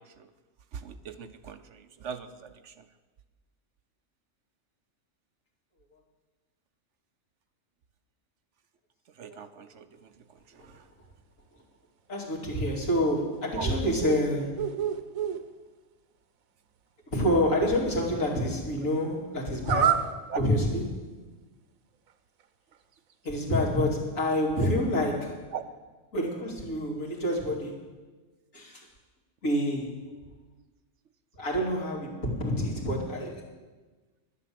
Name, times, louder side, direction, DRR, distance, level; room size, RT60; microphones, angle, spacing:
voice 1, 0.7-2.7 9.2-9.9 10.6-10.8 13.6-13.7 20.3-20.4 25.5-25.6, right 7 dB, 65° right, 10 dB, 1.0 m, -39 dB
voice 2, 12.1-14.8 17.1-21.1 23.2-25.5 26.1-27.9 28.5-28.9 29.4-30.1 31.3-33.5, equal, 75° left, -2 dB, 3.1 m, -28 dB
sound 1, 13.3-14.2 14.6-15.4 19.6-20.1, right 8 dB, 85° right, 1.3 m, -27 dB
11.5 x 10.5 x 7.6 m, 1.3 s
omnidirectional pair, 1.4 m